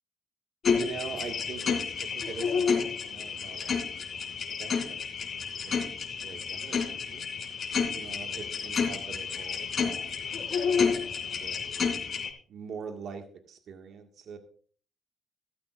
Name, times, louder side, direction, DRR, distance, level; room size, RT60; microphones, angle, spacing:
sound 1, 0.6-12.3, left 6 dB, 50° left, 3.0 m, -30 dB
voice 1, 0.7-7.2 7.9-10.1 10.8-11.6 12.5-14.4, right 6 dB, 70° right, 5 dB, 1.8 m, -43 dB
13.5 x 13.0 x 2.5 m, 0.43 s
cardioid pair, 90°, 0 cm